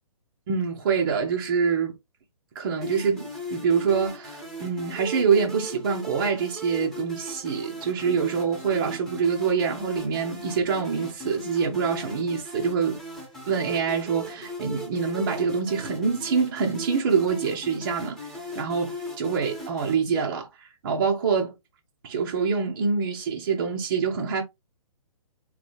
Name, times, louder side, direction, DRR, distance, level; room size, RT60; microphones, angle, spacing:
voice 1, 0.5-2.0 2.5-13.0 13.5-18.2 18.5-20.5 20.8-21.5 22.0-24.4, right 6 dB, 35° right, 0.8 m, -25 dB
sound 1, 2.8-19.9, left 1 dB, ahead, 1.1 m, -38 dB
3.7 x 3.1 x 3.3 m
figure-of-eight pair, 130°, 19 cm